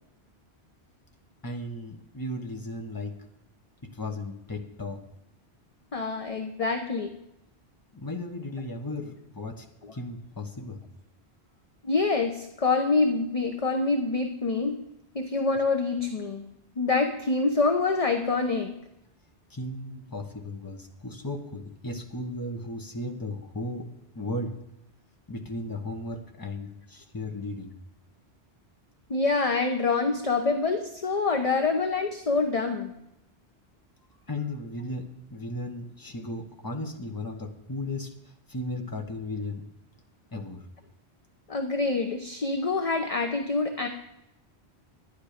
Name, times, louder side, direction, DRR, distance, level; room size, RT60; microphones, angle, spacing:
voice 1, 1.4-3.1 3.8-5.0 7.9-9.6 9.9-10.8 19.5-23.9 24.1-24.6 25.3-27.7 34.3-38.1 38.5-39.6 40.3-40.6, left 2 dB, 20° left, 3 dB, 1.1 m, -35 dB
voice 2, 5.9-7.1 9.8-9.9 11.8-14.8 15.1-16.4 16.8-18.7 29.1-32.9 41.5-43.9, left 3 dB, 35° left, 5 dB, 0.9 m, -26 dB
12.0 x 10.0 x 5.1 m, 0.83 s
omnidirectional pair, 1.1 m